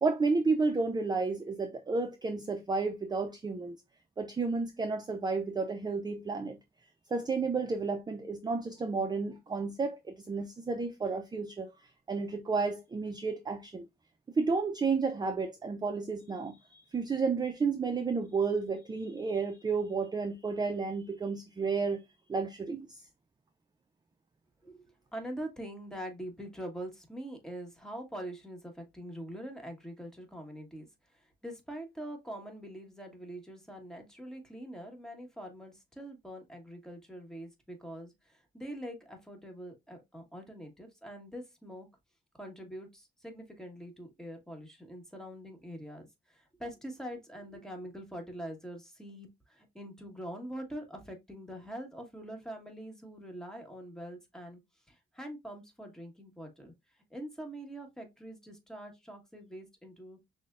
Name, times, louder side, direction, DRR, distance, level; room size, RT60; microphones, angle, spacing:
voice 1, 0.0-3.8 4.2-6.6 7.1-11.7 12.1-13.9 14.4-22.0 22.3-23.0, right 4 dB, 20° right, 0.4 m, -31 dB
voice 2, 24.6-30.9 31.1-41.9 42.4-54.6 54.9-56.7 57.1-60.2, right 1 dB, 5° left, 1.2 m, -44 dB
6.0 x 2.1 x 2.3 m
cardioid pair, 80°, 20 cm